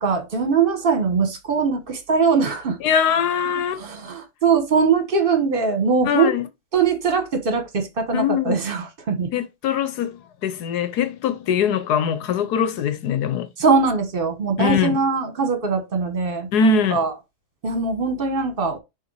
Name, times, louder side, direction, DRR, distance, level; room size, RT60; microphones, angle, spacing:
voice 1, 0.0-2.8 3.8-6.3 6.7-9.3 13.6-17.1 17.6-18.8, right 5 dB, 35° right, 1.3 m, -21 dB
voice 2, 2.8-3.8 6.0-6.5 8.1-8.6 9.3-13.5 14.6-15.0 16.5-17.0, left 7 dB, 85° left, 1.4 m, -22 dB
6.7 x 3.0 x 4.6 m
omnidirectional pair, 1.7 m